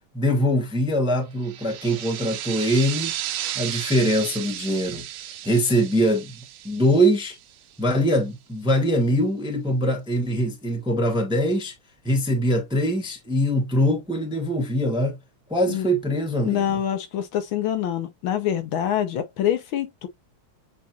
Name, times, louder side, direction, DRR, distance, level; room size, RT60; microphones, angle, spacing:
voice 1, 0.1-3.2 3.5-5.1 5.4-6.3 6.6-7.3 7.8-11.7 12.0-15.2 15.5-16.8, equal, 5° right, 0.7 m, -22 dB
sound 1, 1.4-7.7, right 12 dB, 80° right, 1.3 m, -34 dB
voice 2, 16.4-20.1, left 10 dB, 80° left, 1.7 m, -25 dB
7.3 x 2.6 x 2.7 m
omnidirectional pair, 2.2 m